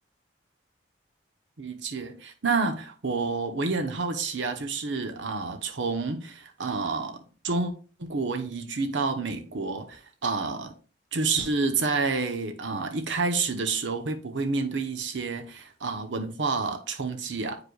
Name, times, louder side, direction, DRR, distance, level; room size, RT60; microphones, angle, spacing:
voice 1, 1.6-7.7 8.0-10.7 11.1-17.6, right 4 dB, 85° right, 0.9 m, -29 dB
9.5 x 4.9 x 2.3 m
head